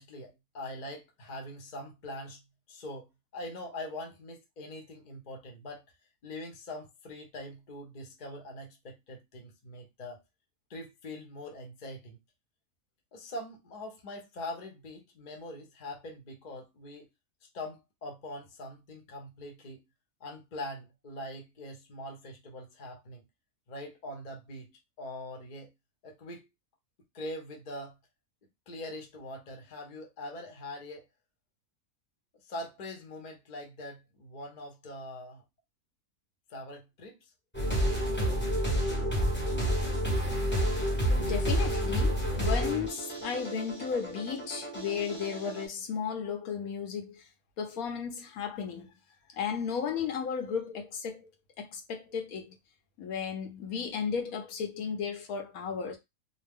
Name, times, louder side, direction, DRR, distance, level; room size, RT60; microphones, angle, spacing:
voice 1, 0.0-2.4 2.7-5.8 6.2-10.2 10.7-12.2 13.1-17.1 17.5-19.8 20.2-23.2 23.7-24.7 25.0-25.7 26.0-26.5 27.1-27.9 28.7-31.0 32.5-35.4 36.5-37.2, left 1 dB, 40° left, 0.7 m, -43 dB
sound 1, 37.5-45.7, equal, 10° left, 0.7 m, -29 dB
voice 2, 41.2-47.2 47.6-49.0 49.3-51.3 51.6-52.5 53.0-56.0, left 6 dB, 75° left, 1.1 m, -34 dB
2.8 x 2.1 x 3.4 m
omnidirectional pair, 1.6 m